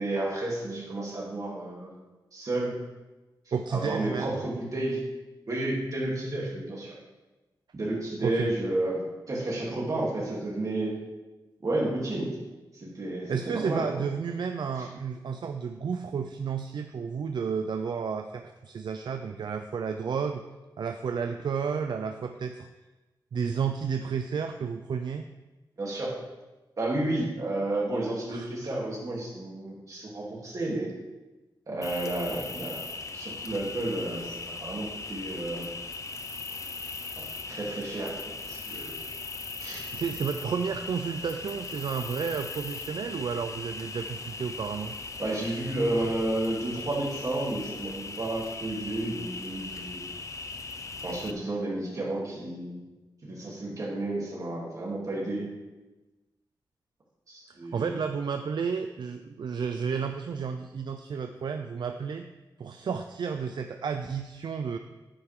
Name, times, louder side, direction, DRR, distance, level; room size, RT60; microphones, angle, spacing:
voice 1, 0.0-1.9 2.3-2.7 3.7-5.0 5.5-7.0 7.7-10.9 11.6-12.4 12.7-13.8 14.7-14.9 25.8-26.1 26.8-30.9 31.7-32.8 33.1-35.7 37.2-39.0 39.6-39.9 45.2-50.0 51.0-52.8 53.2-55.5 57.3-58.0, right 2 dB, 45° right, -5 dB, 3.1 m, -31 dB
voice 2, 3.5-4.4 8.2-8.5 13.3-20.4 20.8-22.7 23.3-25.3 28.3-28.5 39.9-44.9 57.5-62.2 62.6-64.8, right 6 dB, 65° right, 7 dB, 0.5 m, -32 dB
Cricket, 31.8-51.3, left 4 dB, 40° left, 0.5 m, -39 dB
11.5 x 9.1 x 3.7 m, 1.1 s
wide cardioid pair, 175°, 8 cm